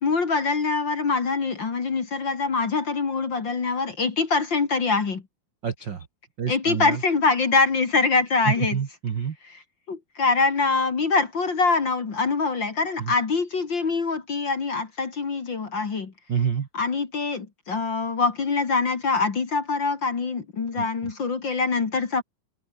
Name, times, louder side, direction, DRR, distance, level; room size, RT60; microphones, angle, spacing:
voice 1, 0.0-5.2 6.5-8.8 9.9-16.1 16.7-22.2, left 4 dB, 35° left, 2.2 m, -24 dB
voice 2, 5.6-6.1 6.4-7.0 8.4-9.4 13.0-13.1 16.3-16.7 20.7-20.9, right 7 dB, 70° right, 1.0 m, -27 dB
omnidirectional pair, 4.5 m